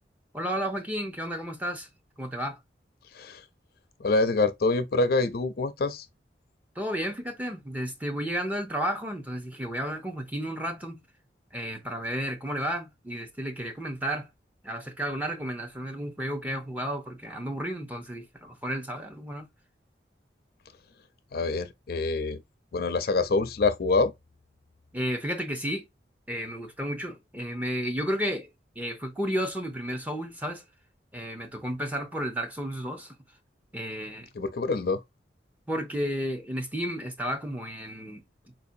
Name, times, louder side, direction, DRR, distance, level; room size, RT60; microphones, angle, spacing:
voice 1, 0.3-1.9 2.2-2.6 6.8-11.0 11.5-14.3 14.6-19.5 24.9-25.9 26.3-28.5 28.8-30.6 31.1-33.1 33.7-34.3 35.7-38.2, equal, 10° right, 0.6 m, -32 dB
voice 2, 4.0-6.1 21.3-22.4 22.7-24.1 34.3-35.0, left 3 dB, 55° left, 0.5 m, -26 dB
4.3 x 2.7 x 2.5 m
head